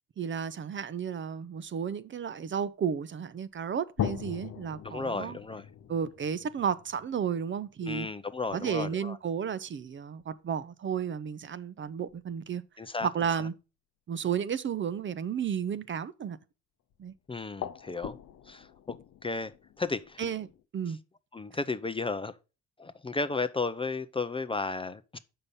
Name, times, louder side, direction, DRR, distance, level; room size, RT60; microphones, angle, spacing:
voice 1, 0.2-5.4 5.9-8.1 8.5-12.6 13.0-13.5 14.1-16.4 17.0-17.1 20.2-20.5 20.7-21.0, right 7 dB, 40° right, 0.6 m, -33 dB
sound 1, 4.0-9.3 10.2-10.3 11.4-11.5 11.8-12.3 16.9-17.1 17.4-20.6, left 9 dB, 60° left, 0.7 m, -41 dB
voice 2, 4.8-5.6 7.8-9.2 12.8-13.1 17.3-18.1 18.5-19.0 19.2-19.5 19.8-20.2 21.3-22.3 22.8-25.2, left 3 dB, 20° left, 0.5 m, -33 dB
6.8 x 5.5 x 5.2 m
cardioid pair, 90°, 30 cm